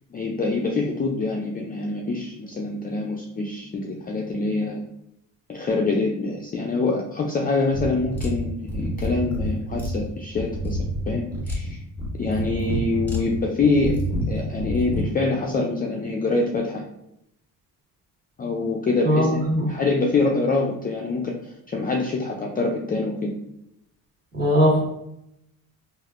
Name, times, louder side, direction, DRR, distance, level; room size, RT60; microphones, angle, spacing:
voice 1, 0.1-4.8 5.5-10.8 11.1-11.8 12.2-13.9 14.3-16.8 18.4-19.4 19.7-21.3 21.7-23.3, left 3 dB, 25° left, 0 dB, 0.3 m, -25 dB
sound 1, 7.7-15.1, equal, 5° left, 1.3 m, -28 dB
voice 2, 19.0-19.6 24.3-24.8, equal, 25° right, -5 dB, 1.4 m, -19 dB
3.2 x 2.5 x 2.4 m, 0.81 s
supercardioid pair, 80°, 39 cm